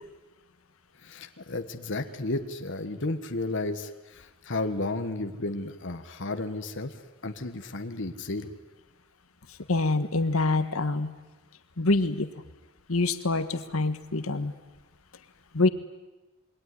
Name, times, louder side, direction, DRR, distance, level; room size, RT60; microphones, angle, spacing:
voice 1, 1.0-6.9 7.2-8.5, left 2 dB, 60° left, 7 dB, 1.5 m, -33 dB
voice 2, 9.7-11.1 11.8-12.3 12.9-14.5 15.5-15.7, left 2 dB, 80° left, 10 dB, 1.6 m, -25 dB
27.5 x 22.0 x 9.9 m, 1.1 s
head